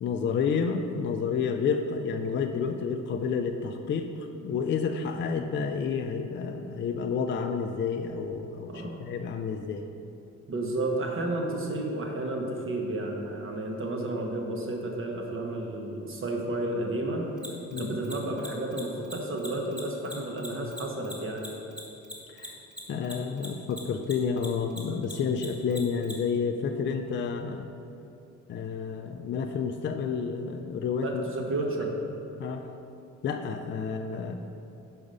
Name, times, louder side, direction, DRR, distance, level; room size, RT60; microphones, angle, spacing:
voice 1, 0.0-9.8 17.7-18.0 22.3-22.6 22.9-27.7 28.5-31.2 31.6-31.7 32.4-32.7 33.2-34.4, left 5 dB, 40° left, 5 dB, 0.4 m, -30 dB
voice 2, 8.7-9.0 10.5-17.3 17.8-21.5 31.0-32.0, right 2 dB, 45° right, 1 dB, 1.1 m, -32 dB
Mechanisms, 17.4-24.1 24.4-26.1, equal, 5° right, 1.2 m, -40 dB
5.0 x 4.9 x 5.3 m, 2.7 s
cardioid pair, 90°, 30 cm